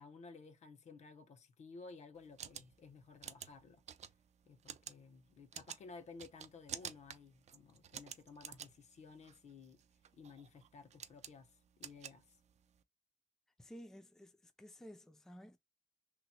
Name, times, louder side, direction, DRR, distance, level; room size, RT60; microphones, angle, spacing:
voice 1, 0.0-3.8 4.5-9.8 10.1-12.3, left 4 dB, 65° left, 0.7 m, -55 dB
sound 1, 2.2-12.8, right 9 dB, 60° right, 0.4 m, -51 dB
voice 2, 13.6-15.6, equal, 5° left, 0.4 m, -54 dB
3.0 x 2.0 x 4.1 m
wide cardioid pair, 145°, 13 cm